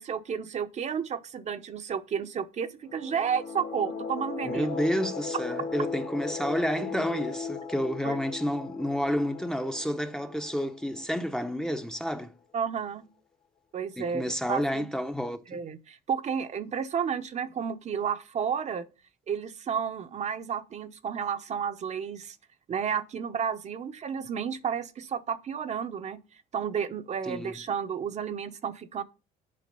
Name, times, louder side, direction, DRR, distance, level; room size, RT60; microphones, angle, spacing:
voice 1, 0.0-4.7 8.0-8.2 12.5-13.1 13.7-14.2 14.5-14.9 15.5-18.8 19.3-22.4 22.7-26.2 26.5-29.0, right 7 dB, 40° right, 0.7 m, -32 dB
sound 1, 2.8-11.4, left 5 dB, 35° left, 1.1 m, -37 dB
voice 2, 4.4-12.3 14.0-15.6 27.3-27.6, equal, 5° left, 0.7 m, -30 dB
7.5 x 5.1 x 5.3 m
cardioid pair, 110°, 17 cm